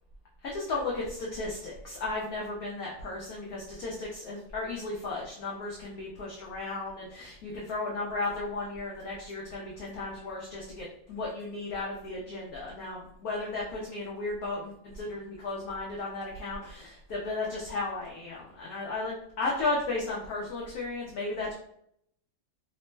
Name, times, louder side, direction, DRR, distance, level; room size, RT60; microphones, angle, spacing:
voice 1, 0.4-21.5, left 3 dB, 65° left, -4 dB, 0.9 m, -35 dB
3.3 x 2.0 x 3.1 m, 0.71 s
omnidirectional pair, 2.0 m